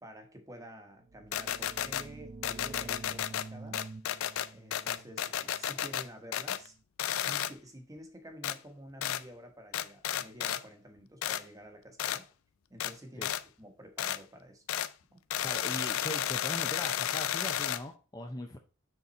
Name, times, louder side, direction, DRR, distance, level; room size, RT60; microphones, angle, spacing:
voice 1, 0.0-3.9 4.5-6.7 7.1-12.3 12.7-14.6 15.1-15.2, equal, 15° right, 5 dB, 1.2 m, -50 dB
sound 1, 1.0-6.6, right 3 dB, 35° right, 0.3 m, -48 dB
sound 2, 1.3-2.0 2.4-3.5 3.7-6.0 6.3-6.7 7.0-7.5 8.4-8.5 9.0-9.2 9.7-10.6 11.2-11.4 12.0-12.2 12.8-12.9 13.2-13.4 14.0-14.2 14.7-14.9 15.3-17.8, left 11 dB, 85° left, 0.4 m, -32 dB
voice 2, 15.4-18.6, left 1 dB, 20° left, 4 dB, 0.6 m, -40 dB
6.8 x 4.1 x 4.2 m, 0.34 s
head